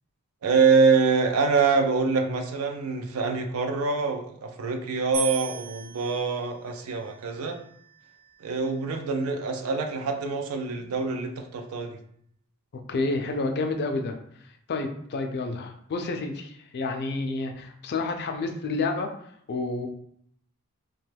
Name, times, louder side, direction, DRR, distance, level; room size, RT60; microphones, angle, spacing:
voice 1, 0.4-7.6 8.4-12.0, right 4 dB, 70° right, 5 dB, 0.4 m, -25 dB
sound 1, 5.1-8.4, right 7 dB, 50° right, 0.9 m, -39 dB
voice 2, 12.9-14.2 14.7-19.1 19.5-19.9, left 3 dB, 50° left, 5 dB, 0.4 m, -29 dB
2.9 x 2.2 x 3.3 m, 0.66 s
head